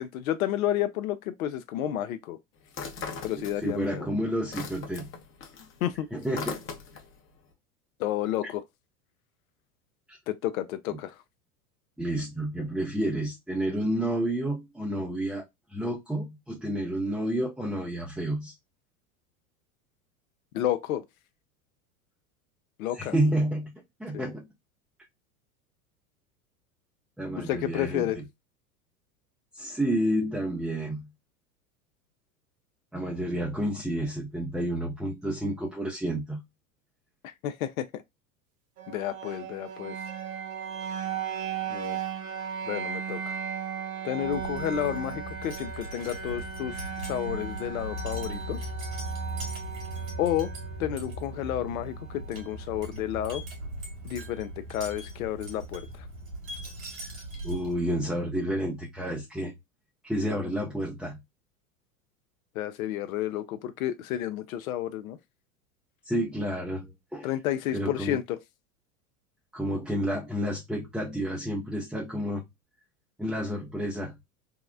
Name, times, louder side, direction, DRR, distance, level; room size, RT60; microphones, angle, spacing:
voice 1, 0.0-2.4 3.2-4.1 5.8-6.1 8.0-8.6 10.3-11.2 20.5-21.0 22.8-23.2 24.1-24.3 27.4-28.2 37.2-38.0 38.9-39.9 41.7-42.0 42.7-43.3 44.0-48.7 50.2-50.5 50.8-53.4 54.0-56.0 62.6-65.2 67.2-68.4, left 12 dB, 70° left, 0.5 m, -31 dB
sound 1, 2.7-3.9 4.2-7.2, left 5 dB, 30° left, 0.7 m, -39 dB
voice 2, 3.6-5.1 6.1-6.6 8.4-8.5 10.1-10.2 12.0-18.5 23.0-23.7 24.0-24.5 27.2-28.0 29.5-31.1 32.9-36.4 57.0-57.1 57.4-59.5 60.0-61.2 66.0-67.3 67.7-68.2 69.5-72.4 73.2-74.2, right 1 dB, ahead, 0.5 m, -30 dB
sound 2, 38.8-52.7, right 7 dB, 35° right, 0.9 m, -37 dB
Wind chime, 44.2-57.9, right 1 dB, 65° right, 1.9 m, -38 dB
3.7 x 2.1 x 2.4 m
hypercardioid pair, 90°, 43 cm